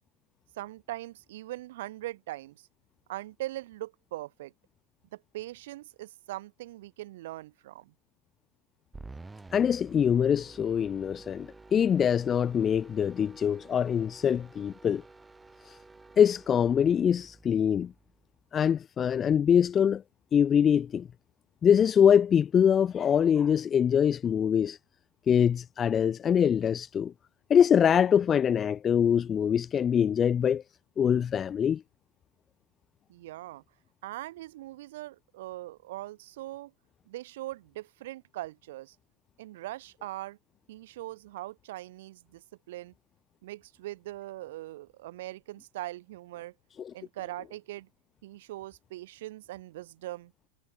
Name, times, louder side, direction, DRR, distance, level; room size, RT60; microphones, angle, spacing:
voice 1, 0.5-2.7 3.1-4.5 5.1-7.9 33.1-33.6 34.0-36.7 37.1-39.0 39.4-40.4 40.7-42.9 43.4-46.5 46.9-47.9 48.2-50.3, right 16 dB, 55° right, 2.6 m, -41 dB
sound 1, 8.9-18.3, right 3 dB, 10° right, 2.0 m, -51 dB
voice 2, 9.5-15.0 15.7-15.8 16.2-17.9 18.5-20.0 20.3-21.1 21.6-24.8 25.3-27.1 27.5-30.6 31.0-31.8 46.8-46.9, left 8 dB, 25° left, 0.6 m, -24 dB
figure-of-eight pair, 90°, 0 cm